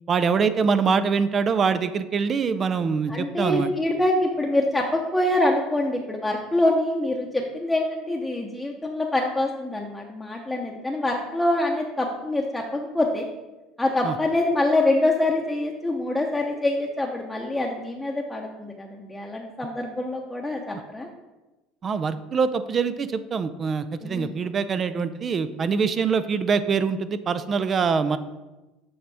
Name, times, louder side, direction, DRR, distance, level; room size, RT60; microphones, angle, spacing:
voice 1, 0.1-3.7 14.0-14.1 21.8-28.2, right 5 dB, 35° right, 12 dB, 0.4 m, -24 dB
voice 2, 3.1-13.3 13.8-21.1 24.0-24.3, left 1 dB, 10° left, -1 dB, 0.8 m, -25 dB
7.0 x 5.0 x 3.4 m, 1.1 s
supercardioid pair, 90°, 0 cm